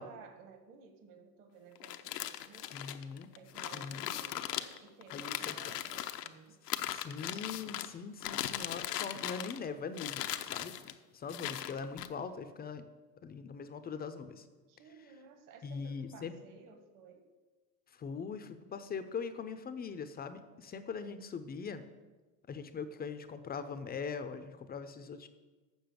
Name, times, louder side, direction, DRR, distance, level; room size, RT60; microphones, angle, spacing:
voice 1, 0.0-2.8 3.3-6.6 14.7-17.3, right 5 dB, 45° right, 6 dB, 1.5 m, -56 dB
sound 1, 1.8-6.3 6.7-7.9 8.2-9.7 9.9-10.9 11.3-12.1, left 12 dB, 75° left, 0.8 m, -39 dB
voice 2, 2.7-3.3 3.7-4.1 5.1-5.5 6.9-10.7 11.1-12.8 13.2-14.4 15.6-16.3 18.0-21.9 22.5-25.3, left 5 dB, 20° left, 11 dB, 0.6 m, -41 dB
7.1 x 6.7 x 7.7 m, 1.3 s
hypercardioid pair, 90°, 47 cm